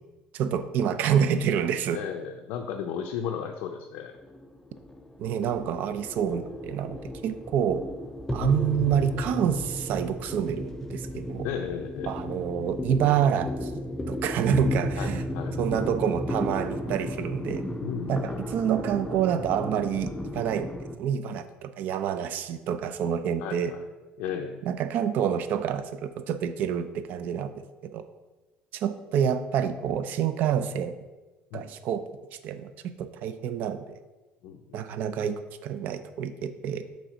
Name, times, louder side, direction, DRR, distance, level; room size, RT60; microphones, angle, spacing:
voice 1, 0.3-2.0 5.2-7.8 8.3-11.5 12.1-13.7 14.1-15.2 15.6-17.6 18.1-20.7 21.0-23.7 24.6-27.5 27.9-28.0 28.7-30.9 31.5-32.0 32.4-33.8 34.7-36.8, right 8 dB, 60° right, 10 dB, 0.4 m, -27 dB
voice 2, 1.9-4.1 11.4-12.1 15.0-15.6 17.8-18.3 23.4-23.8 24.2-24.6 31.5-31.7 34.4-34.8, left 7 dB, 90° left, 2 dB, 0.5 m, -34 dB
sound 1, 4.1-21.0, equal, 10° left, 0.4 m, -34 dB
6.3 x 3.4 x 5.0 m, 1.2 s
cardioid pair, 155°, 3 cm